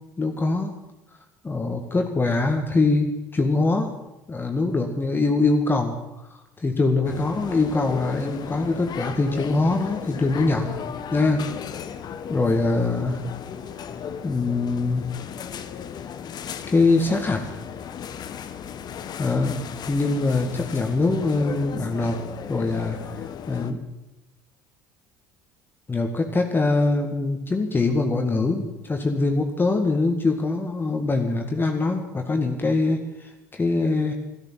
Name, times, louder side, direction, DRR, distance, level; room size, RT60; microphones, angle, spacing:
voice 1, 0.2-0.7 1.4-3.9 4.3-5.9 6.6-10.8 11.1-11.5 12.3-13.2 14.2-15.0 16.7-17.4 19.2-19.5 19.9-22.2 22.5-23.8 25.9-34.1, left 3 dB, 25° left, 3 dB, 2.0 m, -23 dB
sound 1, 7.0-23.7, left 8 dB, 50° left, 1.3 m, -36 dB
13.0 x 13.0 x 7.6 m, 0.95 s
hypercardioid pair, 70°, 9 cm